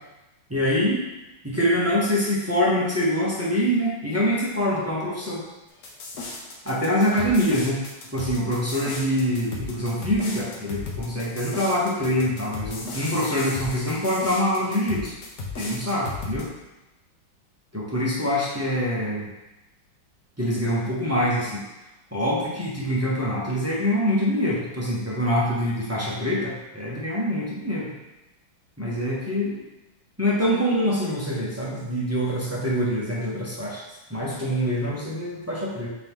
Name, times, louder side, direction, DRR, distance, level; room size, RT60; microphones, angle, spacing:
voice 1, 0.5-1.0 1.4-5.4 6.6-7.8 8.1-15.1 15.6-16.5 17.7-19.3 20.4-21.6 22.1-27.9 28.8-29.6 30.2-33.8 34.1-35.9, equal, 10° right, -6 dB, 0.7 m, -25 dB
sound 1, 5.8-16.4, left 3 dB, 55° left, 1.3 m, -35 dB
8.7 x 3.0 x 3.7 m, 1.0 s
omnidirectional pair, 2.2 m